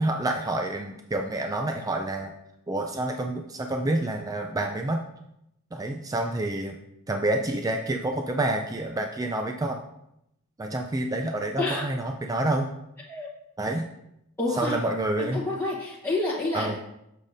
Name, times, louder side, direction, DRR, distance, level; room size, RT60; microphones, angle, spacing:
voice 1, 0.0-2.3 2.7-5.0 5.7-6.8 7.1-9.8 10.6-12.7 13.6-13.9 14.6-15.4 16.5-16.8, right 1 dB, 15° right, 3 dB, 0.3 m, -28 dB
voice 2, 11.6-11.9 13.1-13.3 14.4-14.8 15.2-16.8, left 2 dB, 10° left, -9 dB, 1.0 m, -29 dB
7.2 x 6.5 x 2.6 m, 0.81 s
head